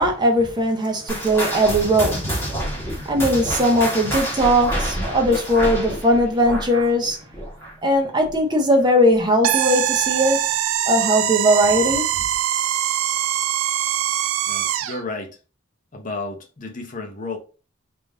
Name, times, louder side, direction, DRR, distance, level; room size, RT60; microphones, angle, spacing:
voice 1, 0.0-2.3 2.8-7.2 7.8-10.4 10.9-12.0, equal, 20° right, 0.6 m, -19 dB
sound 1, 1.1-7.9 8.2-8.5 9.1-9.2 10.0-10.1, equal, 10° left, 1.2 m, -27 dB
sound 2, 9.4-15.0, right 11 dB, 85° right, 0.3 m, -23 dB
voice 2, 14.5-15.4 15.9-17.4, left 3 dB, 40° left, 0.7 m, -32 dB
3.6 x 2.5 x 3.6 m
head